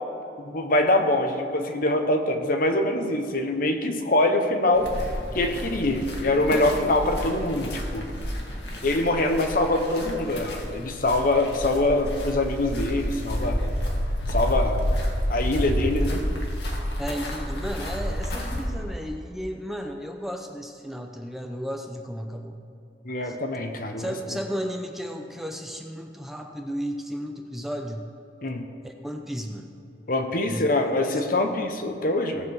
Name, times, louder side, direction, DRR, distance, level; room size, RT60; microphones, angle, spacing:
voice 1, 0.4-4.9 5.3-8.1 8.8-13.6 14.3-14.8 15.3-16.3 23.0-24.1 28.4-28.6 30.1-32.5, left 2 dB, 55° left, 5 dB, 1.0 m, -24 dB
sound 1, 4.7-18.7, equal, 70° left, 2.0 m, -30 dB
voice 2, 17.0-22.6 23.2-23.4 24.0-28.0 28.8-29.7 30.5-31.2, equal, ahead, 3 dB, 0.7 m, -34 dB
17.5 x 7.3 x 4.7 m, 2.6 s
head